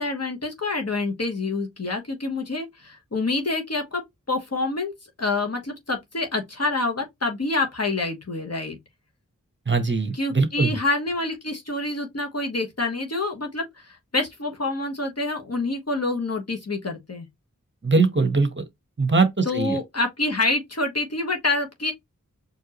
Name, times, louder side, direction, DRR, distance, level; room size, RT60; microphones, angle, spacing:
voice 1, 0.0-4.0 4.3-4.9 5.2-8.8 10.1-17.3 19.4-21.9, left 2 dB, 50° left, 1.3 m, -27 dB
voice 2, 9.7-10.7 17.8-18.6 19.0-19.8, right 3 dB, 35° right, 1.2 m, -21 dB
4.7 x 2.8 x 3.0 m
wide cardioid pair, 55°, 32 cm